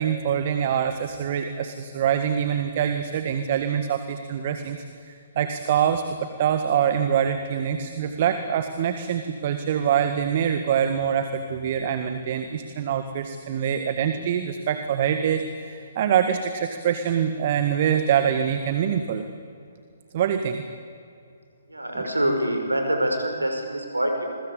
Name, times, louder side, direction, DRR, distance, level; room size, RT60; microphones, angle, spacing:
voice 1, 0.0-19.3 20.1-20.6 22.0-22.1, right 8 dB, 45° right, 8 dB, 1.7 m, -25 dB
voice 2, 21.7-24.3, right 1 dB, 90° right, 4 dB, 5.9 m, -25 dB
27.5 x 22.5 x 8.5 m, 2.4 s
figure-of-eight pair, 130°, 0 cm